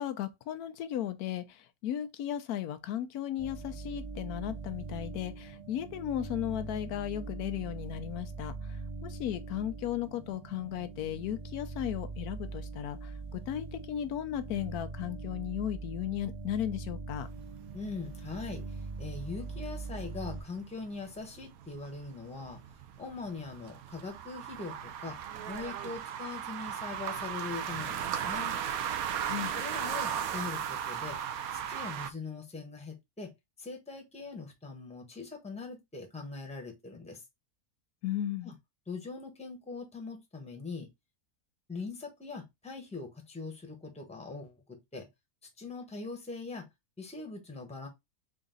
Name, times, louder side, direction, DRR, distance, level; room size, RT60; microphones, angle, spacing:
voice 1, 0.0-17.3 29.2-29.5 38.0-38.6, left 11 dB, 85° left, 1.1 m, -36 dB
sound 1, 3.4-20.4, right 3 dB, 35° right, 0.6 m, -42 dB
sound 2, 17.2-32.1, right 9 dB, 75° right, 1.0 m, -37 dB
voice 2, 17.7-22.6 23.0-25.2 25.5-28.6 29.5-31.2 31.5-33.3 33.6-37.2 38.4-38.5 38.9-40.9 41.7-45.1 45.6-46.7 47.0-47.9, left 4 dB, 5° left, 0.9 m, -41 dB
3.9 x 2.6 x 3.7 m
omnidirectional pair, 1.6 m